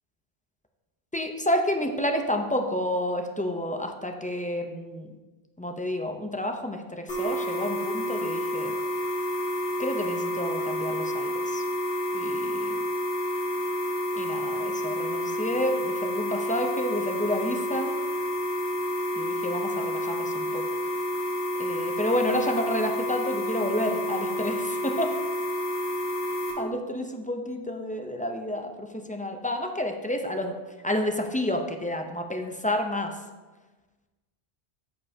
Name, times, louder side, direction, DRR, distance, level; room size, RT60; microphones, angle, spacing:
voice 1, 1.1-5.1 5.6-8.7 9.8-11.6 12.1-12.7 14.1-17.9 19.2-20.6 21.6-25.1 26.6-30.6 30.8-33.1, left 1 dB, 10° left, 4 dB, 0.4 m, -30 dB
sound 1, 7.1-26.5, equal, 75° left, 2.4 m, -29 dB
13.0 x 5.4 x 2.7 m, 1.2 s
omnidirectional pair, 1.0 m